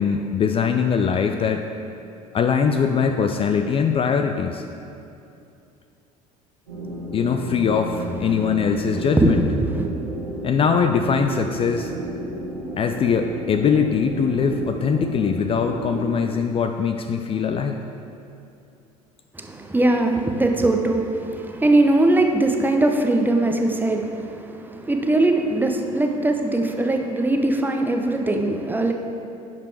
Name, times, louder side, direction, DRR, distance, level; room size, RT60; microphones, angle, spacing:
voice 1, 0.0-1.6 2.3-4.6 7.1-9.4 10.4-11.9 12.8-17.8, left 6 dB, 30° left, 6 dB, 0.4 m, -22 dB
sound 1, 6.7-16.1, right 1 dB, 90° right, 2.1 m, -32 dB
voice 2, 9.2-9.9 19.3-28.9, right 2 dB, 10° right, 3 dB, 0.8 m, -21 dB
10.5 x 5.1 x 4.6 m, 2.6 s
figure-of-eight pair, 65°, 19 cm